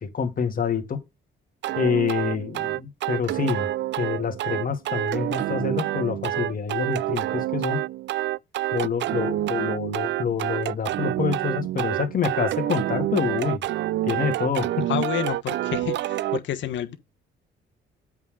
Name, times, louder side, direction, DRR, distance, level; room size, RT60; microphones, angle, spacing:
voice 1, 0.0-1.0 1.8-3.7 4.0-7.8 8.7-13.6 14.1-14.7, left 6 dB, 45° left, 2.1 m, -27 dB
sound 1, 1.6-16.4, right 14 dB, 65° right, 0.4 m, -27 dB
voice 2, 14.9-17.0, left 11 dB, 70° left, 1.2 m, -29 dB
8.2 x 3.8 x 6.3 m
cardioid pair, 90°, 20 cm